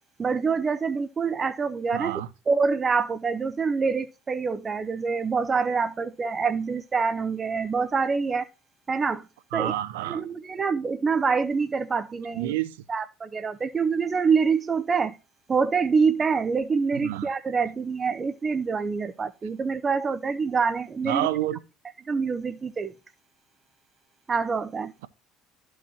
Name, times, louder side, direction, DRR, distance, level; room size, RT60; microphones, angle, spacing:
voice 1, 0.2-2.2 2.5-8.5 8.9-9.3 9.5-9.7 10.1-12.5 12.9-15.2 15.5-21.3 22.1-22.9 24.3-24.9, right 5 dB, 30° right, 0.6 m, -26 dB
voice 2, 1.9-2.3 9.5-10.2 12.3-12.8 17.0-17.3 21.0-21.6, right 14 dB, 80° right, 0.5 m, -28 dB
13.0 x 4.7 x 2.9 m
hypercardioid pair, 65°, 0 cm